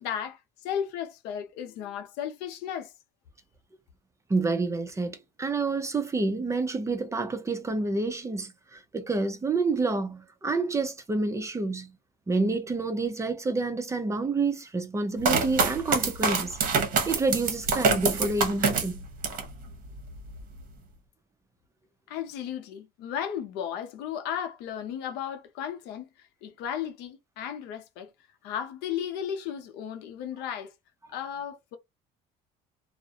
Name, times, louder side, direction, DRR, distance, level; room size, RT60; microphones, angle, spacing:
voice 1, 0.0-2.9 22.1-28.1 28.4-30.7 31.1-31.8, left 9 dB, 75° left, 0.6 m, -35 dB
voice 2, 4.3-11.9 12.3-16.6 17.1-19.1, right 3 dB, 15° right, 0.5 m, -28 dB
sound 1, 15.2-19.5 20.0-20.6, right 4 dB, 55° right, 0.9 m, -26 dB
2.3 x 2.0 x 2.7 m
cardioid pair, 105°, 17 cm